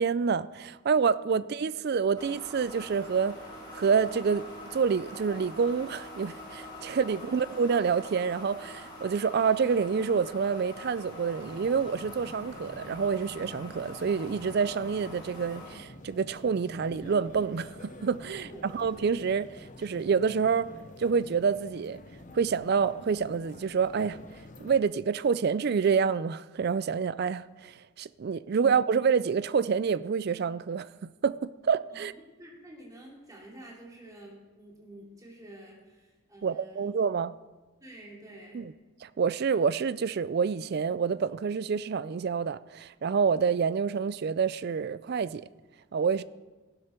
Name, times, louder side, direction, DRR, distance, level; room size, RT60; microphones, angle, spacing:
voice 1, 0.0-3.4 3.7-4.4 4.7-20.7 21.0-22.0 22.3-24.2 24.6-32.1 36.4-37.3 38.5-38.7 39.0-45.5 45.9-46.2, right 6 dB, 50° right, 0.3 m, -27 dB
sound 1, 2.2-15.8, left 1 dB, 20° left, 3.2 m, -45 dB
sound 2, 11.4-24.8, left 1 dB, 35° left, 0.9 m, -48 dB
voice 2, 31.9-36.9 37.8-38.7, right 1 dB, 15° right, 2.8 m, -49 dB
14.5 x 12.0 x 4.5 m
head